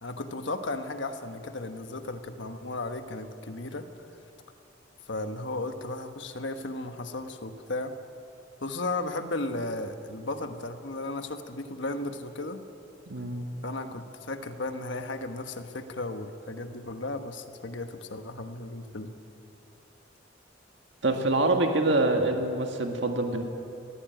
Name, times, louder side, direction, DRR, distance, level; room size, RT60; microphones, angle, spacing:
voice 1, 0.0-3.9 5.1-7.9 8.6-12.6 13.6-19.1, left 2 dB, 70° left, 7 dB, 1.3 m, -35 dB
voice 2, 13.1-13.5 21.0-23.4, right 2 dB, 65° right, 3 dB, 1.8 m, -25 dB
20.5 x 15.5 x 9.1 m, 2.7 s
head